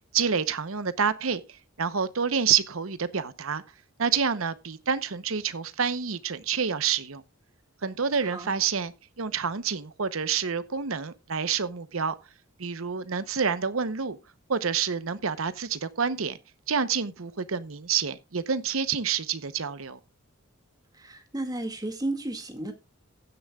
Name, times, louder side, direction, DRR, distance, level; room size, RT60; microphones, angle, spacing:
voice 1, 0.1-1.4 1.8-3.6 4.0-7.2 7.8-12.1 12.6-14.2 14.5-16.4 16.7-20.0, right 6 dB, 80° right, 0.9 m, -28 dB
voice 2, 20.9-22.7, right 2 dB, 20° right, 2.1 m, -33 dB
15.5 x 10.5 x 2.4 m
head